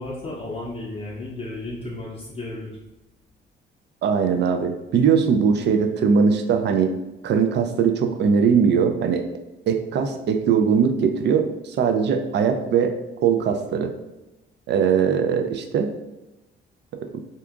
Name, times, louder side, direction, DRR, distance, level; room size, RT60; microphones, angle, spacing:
voice 1, 0.0-2.8, left 2 dB, 30° left, -5 dB, 0.6 m, -33 dB
voice 2, 4.0-6.9 7.2-9.2 9.7-12.9 13.2-13.9 14.7-15.9 17.0-17.1, right 6 dB, 60° right, 6 dB, 0.5 m, -20 dB
2.7 x 2.4 x 3.5 m, 0.99 s
cardioid pair, 90°, 20 cm